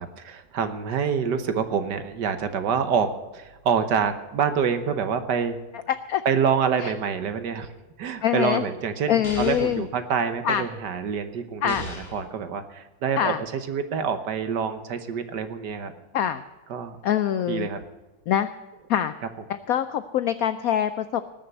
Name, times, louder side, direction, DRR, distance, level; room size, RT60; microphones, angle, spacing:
voice 1, 0.0-5.6 6.2-7.7 8.0-15.9 16.7-17.0 17.5-17.8, right 6 dB, 65° right, 9 dB, 1.5 m, -26 dB
voice 2, 8.2-8.6 9.1-9.8 10.4-10.6 11.6-11.8 13.2-13.4 16.1-16.4 17.0-17.7 18.3-18.5 18.9-19.1 19.7-21.2, left 10 dB, 85° left, 12 dB, 0.7 m, -24 dB
sound 1, 9.2-9.9 11.7-12.3, left 2 dB, 35° left, 1.8 m, -38 dB
19.5 x 6.6 x 7.7 m, 1.2 s
omnidirectional pair, 2.1 m